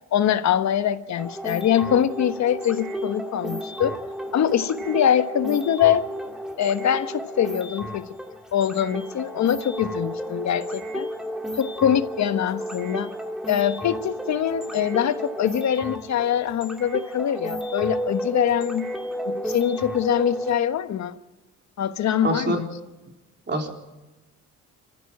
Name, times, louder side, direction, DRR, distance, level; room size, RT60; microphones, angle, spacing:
voice 1, 0.1-3.9 4.3-6.0 6.6-8.0 8.5-11.1 11.5-13.1 13.5-18.9 19.2-21.2 21.8-22.7, left 9 dB, 65° left, 11 dB, 1.3 m, -23 dB
sound 1, 1.2-20.6, equal, ahead, 2.3 m, -33 dB
voice 2, 22.2-22.6 23.5-23.7, right 2 dB, 35° right, 2 dB, 3.7 m, -25 dB
25.5 x 15.0 x 7.4 m, 1.1 s
cardioid pair, 90°, 30 cm